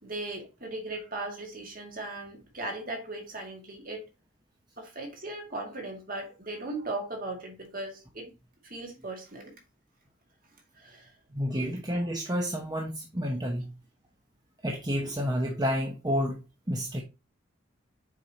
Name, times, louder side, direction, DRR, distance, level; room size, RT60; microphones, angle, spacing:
voice 1, 0.0-4.0 4.8-8.3 8.6-9.5 10.8-11.1, right 2 dB, 45° right, 2.0 m, -38 dB
voice 2, 11.3-13.7 14.6-17.0, equal, 20° right, 0.9 m, -30 dB
7.2 x 4.8 x 2.9 m
head